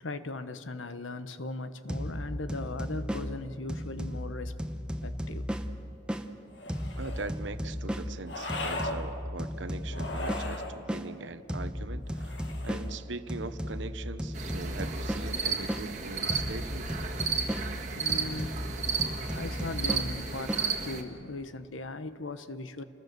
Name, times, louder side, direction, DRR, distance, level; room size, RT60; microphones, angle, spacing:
voice 1, 0.0-4.6 5.0-5.5 17.9-18.6 18.9-22.8, left 2 dB, 90° left, 11 dB, 1.1 m, -39 dB
sound 1, 1.9-6.3 6.7-11.1 11.5-15.9 16.3-20.7, equal, 5° right, 0.9 m, -35 dB
sound 2, 6.5-7.4 8.3-9.0 9.9-10.8 12.1-12.9, left 2 dB, 70° left, 2.1 m, -37 dB
voice 2, 7.0-12.4 12.6-16.9, right 3 dB, 75° right, 12 dB, 1.0 m, -41 dB
sound 3, 14.3-21.0, right 5 dB, 40° right, 1.7 m, -33 dB
29.0 x 21.0 x 6.8 m, 2.6 s
head